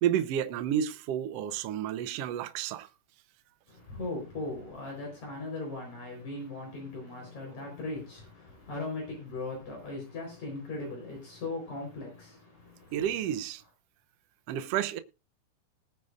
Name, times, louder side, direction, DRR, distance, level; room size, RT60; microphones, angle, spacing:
voice 1, 0.0-2.9 12.9-13.6 14.5-15.0, right 10 dB, 80° right, 1.4 m, -30 dB
voice 2, 3.7-13.0, left 2 dB, 60° left, 5.7 m, -39 dB
20.0 x 8.9 x 2.5 m
omnidirectional pair, 3.8 m